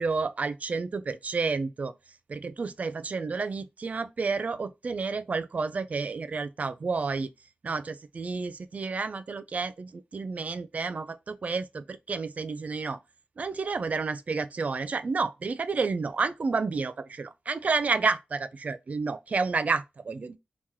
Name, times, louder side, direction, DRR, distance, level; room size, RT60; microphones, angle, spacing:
voice 1, 0.0-1.9 2.3-7.3 7.6-13.0 13.4-20.4, right 4 dB, 45° right, 0.4 m, -30 dB
3.1 x 2.9 x 3.6 m
wide cardioid pair, 110°, 3 cm